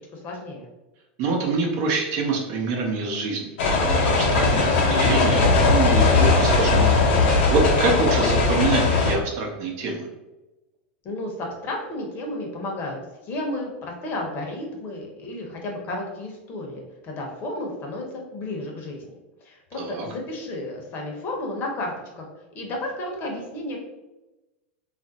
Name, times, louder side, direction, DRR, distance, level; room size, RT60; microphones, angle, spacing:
voice 1, 0.1-0.7 11.0-13.0 13.2-19.0 19.4-22.3 22.5-23.8, left 1 dB, 35° left, 0 dB, 0.8 m, -32 dB
voice 2, 1.2-3.5 3.8-10.1 19.7-20.1, right 3 dB, 50° right, 0 dB, 0.7 m, -26 dB
sound 1, 3.6-9.2, left 3 dB, 70° left, 0.7 m, -19 dB
2.5 x 2.0 x 3.9 m, 1.0 s
supercardioid pair, 125°, 6 cm